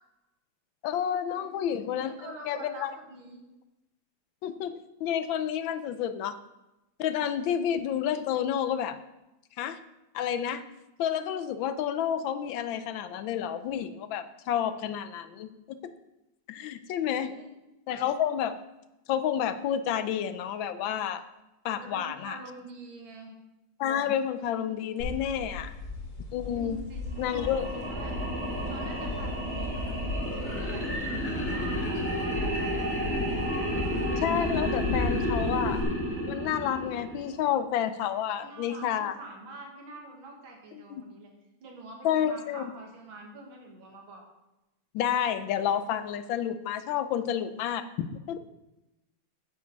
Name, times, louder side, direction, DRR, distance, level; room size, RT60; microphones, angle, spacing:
voice 1, 0.8-2.9 4.4-6.4 7.0-9.0 9.6-9.8 10.1-10.6 11.0-15.8 16.5-17.3 17.9-18.6 19.1-21.2 21.6-22.4 23.8-25.7 26.3-26.8 27.2-27.8 31.8-31.9 34.2-35.8 36.3-39.2 40.7-41.0 42.0-42.7 44.9-48.4, left 9 dB, 80° left, 12 dB, 1.4 m, -30 dB
voice 2, 2.0-3.4 17.1-17.4 21.7-23.3 26.6-28.1 28.7-33.2 38.1-41.3 41.6-44.3, right 2 dB, 80° right, 1 dB, 2.4 m, -46 dB
sound 1, 25.0-35.8, left 2 dB, 60° left, 2.6 m, -36 dB
sound 2, 27.1-37.4, equal, 5° left, 1.8 m, -31 dB
9.6 x 9.3 x 4.1 m, 0.95 s
omnidirectional pair, 2.2 m